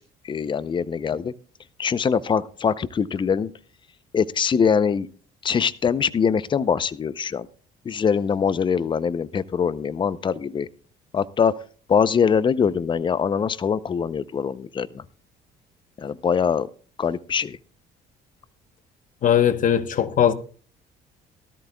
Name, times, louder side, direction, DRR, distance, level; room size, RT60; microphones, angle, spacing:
voice 1, 0.3-1.3 1.8-3.5 4.1-5.1 5.4-7.5 7.9-10.7 11.1-11.5 11.9-14.9 16.0-16.7 17.0-17.6, left 6 dB, 30° left, 0.6 m, -23 dB
voice 2, 19.2-20.3, left 9 dB, 50° left, 1.1 m, -19 dB
17.5 x 13.0 x 2.3 m
cardioid pair, 110°, 17 cm